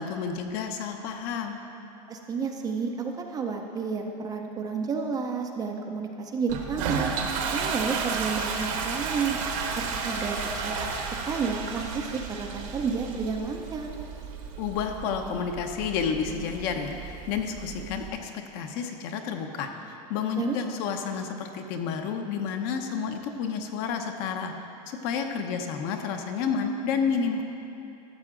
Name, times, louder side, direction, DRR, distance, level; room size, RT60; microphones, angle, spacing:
voice 1, 0.0-1.6 14.6-24.5 24.9-27.4, left 6 dB, 50° left, 5 dB, 0.8 m, -30 dB
voice 2, 2.1-7.1 7.5-9.4 9.8-10.8 11.3-13.9 20.4-20.6, right 5 dB, 20° right, 3 dB, 0.5 m, -31 dB
Toilet flush, 6.5-18.1, right 5 dB, 60° right, 1.2 m, -33 dB
12.5 x 7.4 x 3.8 m, 2.8 s
supercardioid pair, 150°, 20 cm